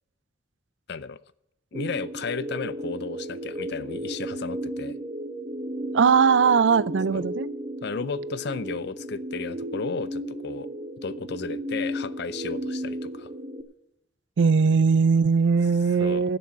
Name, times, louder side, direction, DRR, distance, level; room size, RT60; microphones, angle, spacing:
voice 1, 0.9-1.2 1.7-5.0 7.1-7.3 7.8-10.7 11.0-13.3 16.0-16.3, left 5 dB, 60° left, 0.5 m, -34 dB
sound 1, 1.7-13.6, right 1 dB, 30° right, 0.9 m, -34 dB
voice 2, 5.9-7.5 14.4-16.4, right 5 dB, 75° right, 0.4 m, -20 dB
11.5 x 7.0 x 8.3 m
head